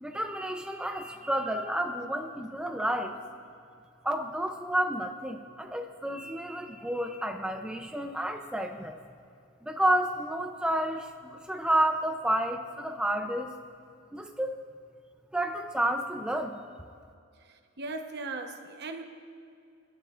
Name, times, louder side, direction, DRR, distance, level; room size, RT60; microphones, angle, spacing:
voice 1, 0.0-3.2 4.0-9.0 9.6-13.5 14.1-14.5 15.3-16.6, right 1 dB, 5° right, 4 dB, 0.5 m, -30 dB
voice 2, 17.5-19.0, right 3 dB, 55° right, 5 dB, 1.0 m, -38 dB
26.0 x 12.5 x 2.5 m, 2.4 s
head